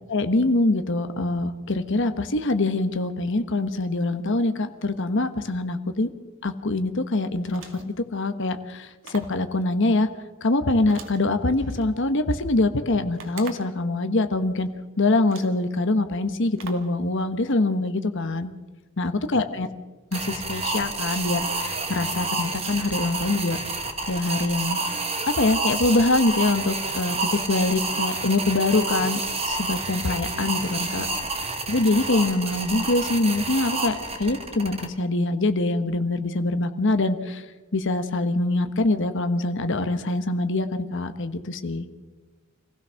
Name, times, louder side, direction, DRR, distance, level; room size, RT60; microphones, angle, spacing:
voice 1, 0.1-6.1 6.4-10.1 10.4-14.7 15.0-18.5 19.0-19.7 20.1-23.6 24.1-24.8 25.4-31.1 31.7-37.4 37.7-41.9, left 2 dB, 65° left, 9 dB, 1.2 m, -24 dB
sound 1, 7.5-8.0 9.0-9.4 10.9-11.9 13.2-13.8 14.7-14.8 15.3-15.6 16.6-17.0, right 4 dB, 70° right, 2.3 m, -42 dB
sound 2, 20.1-34.9, right 3 dB, 30° right, 2.8 m, -29 dB
26.0 x 16.0 x 6.4 m, 1.3 s
head